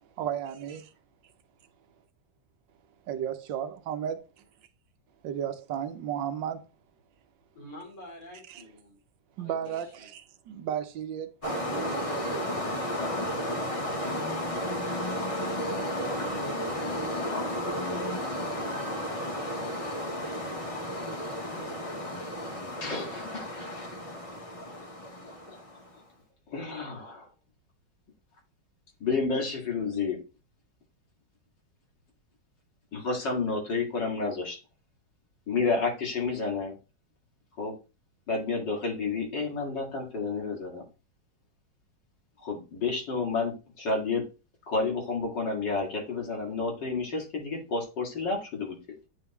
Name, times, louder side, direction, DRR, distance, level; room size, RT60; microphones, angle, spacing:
voice 1, 0.2-0.8 3.1-4.3 5.2-6.7 8.5-8.6 9.4-12.8, right 9 dB, 75° right, 1.4 m, -34 dB
voice 2, 7.5-9.0 9.4-10.1, left 1 dB, 85° left, 5.0 m, -47 dB
sound 1, 11.4-25.9, equal, 25° left, 0.8 m, -33 dB
voice 3, 22.8-23.7 25.5-25.6 26.5-27.3 29.0-30.2 32.9-34.6 35.5-36.8 37.6-37.7 38.3-40.8 42.4-44.2 44.7-48.8, left 4 dB, 65° left, 2.6 m, -30 dB
9.3 x 3.6 x 2.9 m
omnidirectional pair, 2.1 m